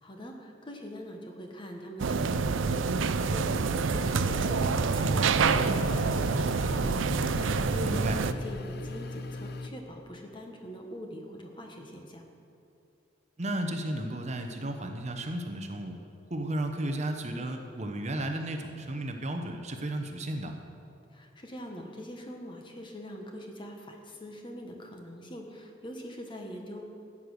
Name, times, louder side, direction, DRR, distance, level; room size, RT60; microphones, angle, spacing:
voice 1, 0.0-12.2 21.1-26.8, equal, 25° left, 2 dB, 1.3 m, -43 dB
sound 1, 2.0-8.3, right 4 dB, 80° right, 0.5 m, -27 dB
sound 2, 4.0-9.7, left 2 dB, 55° left, 0.6 m, -38 dB
voice 2, 7.8-8.2 13.4-15.9 16.3-20.5, right 1 dB, 35° right, 4 dB, 0.9 m, -33 dB
14.5 x 8.6 x 6.5 m, 2.7 s
head